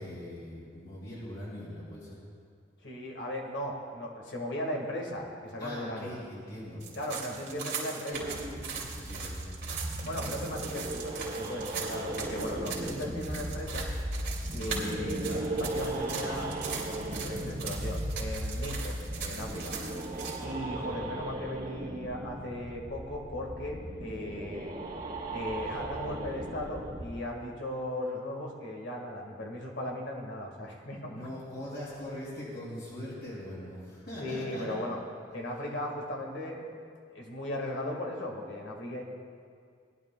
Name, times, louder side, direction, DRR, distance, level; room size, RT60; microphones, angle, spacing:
voice 1, 0.0-2.2 5.6-6.8 7.2-7.4 8.9-9.4 14.6-16.5 20.6-21.3 31.1-34.8, left 1 dB, 60° left, -8 dB, 2.8 m, -42 dB
voice 2, 2.8-6.1 6.9-8.3 10.0-13.9 14.5-16.7 17.1-19.7 20.4-24.8 25.3-31.3 34.2-35.0 35.3-36.8 37.1-39.0, left 1 dB, 85° left, -1 dB, 1.9 m, -37 dB
sound 1, 6.8-20.4, right 6 dB, 70° right, 2.6 m, -40 dB
sound 2, 8.1-27.0, right 1 dB, 45° right, 1.2 m, -37 dB
19.5 x 11.5 x 2.4 m, 2.2 s
head